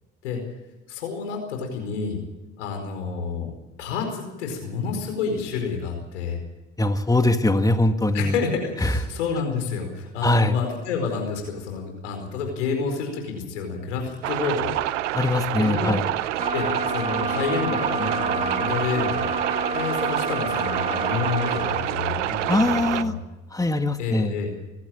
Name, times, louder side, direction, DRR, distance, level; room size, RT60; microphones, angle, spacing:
voice 1, 0.9-2.2 2.6-3.5 3.8-6.4 8.1-14.8 15.6-16.0 16.5-19.3 19.7-22.6 22.9-23.2 24.0-24.5, left 5 dB, 85° left, 4 dB, 4.7 m, -29 dB
voice 2, 6.8-8.3 8.8-9.0 10.2-10.5 15.1-16.0 22.5-23.1 23.5-24.3, left 2 dB, 10° left, 7 dB, 2.0 m, -21 dB
sound 1, 14.2-23.0, right 13 dB, 90° right, 0.7 m, -27 dB
sound 2, 16.4-21.9, right 2 dB, 20° right, 2.7 m, -29 dB
25.0 x 12.5 x 9.1 m, 1.1 s
hypercardioid pair, 55°, 35 cm